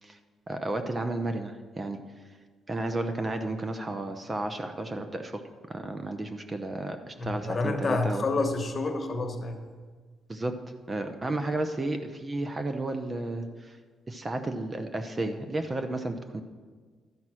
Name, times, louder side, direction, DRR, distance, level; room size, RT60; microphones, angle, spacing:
voice 1, 0.5-2.0 2.7-5.4 5.7-8.3 10.3-10.5 10.9-13.8 14.1-16.4, right 2 dB, 25° right, 7 dB, 0.7 m, -32 dB
voice 2, 7.2-9.6, left 3 dB, 35° left, 5 dB, 1.2 m, -29 dB
12.0 x 5.4 x 6.2 m, 1.5 s
cardioid pair, 90°, 0 cm